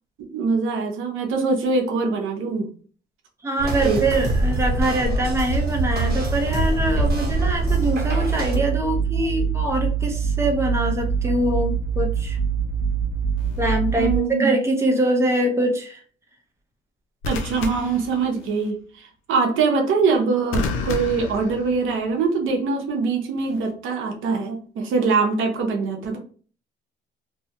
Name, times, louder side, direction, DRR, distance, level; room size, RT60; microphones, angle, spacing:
voice 1, 0.3-2.7 3.8-4.0 13.9-14.5 17.3-26.2, right 4 dB, 80° right, 2 dB, 0.8 m, -23 dB
voice 2, 3.4-12.4 13.6-16.0, right 1 dB, 15° right, 1 dB, 0.7 m, -23 dB
sound 1, 3.6-8.6, right 2 dB, 55° right, 1.0 m, -24 dB
sound 2, 7.3-14.2, right 7 dB, 60° left, 0.8 m, -24 dB
sound 3, 13.4-13.7 17.2-18.7 20.5-22.2 23.4-23.7, left 3 dB, 90° left, 0.5 m, -31 dB
2.7 x 2.2 x 2.8 m, 0.41 s
cardioid pair, 90°, 20 cm